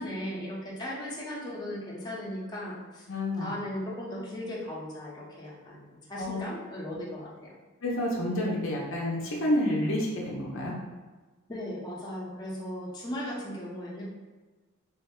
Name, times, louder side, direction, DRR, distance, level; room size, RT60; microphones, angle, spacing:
voice 1, 0.0-3.1 3.4-7.5 11.5-14.0, left 1 dB, 20° left, -6 dB, 0.8 m, -37 dB
voice 2, 3.1-3.5 6.2-6.4 7.8-10.7, left 1 dB, 65° left, -2 dB, 0.6 m, -29 dB
3.4 x 2.1 x 3.5 m, 1.3 s
head